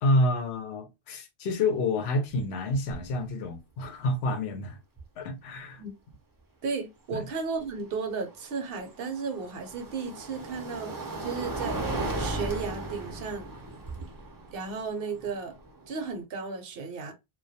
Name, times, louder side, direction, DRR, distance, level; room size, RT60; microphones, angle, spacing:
voice 1, 0.0-4.8 5.2-5.8 7.1-7.2, left 2 dB, 90° left, 0.9 m, -28 dB
sound 1, 2.3-2.4 2.7-3.1 5.0-5.1 8.1-16.2, right 2 dB, 30° right, 0.4 m, -36 dB
voice 2, 6.6-10.9 11.2-11.8 12.2-13.5 14.5-15.5 15.9-17.1, right 5 dB, 65° right, 0.8 m, -34 dB
2.2 x 2.2 x 2.6 m
omnidirectional pair, 1.0 m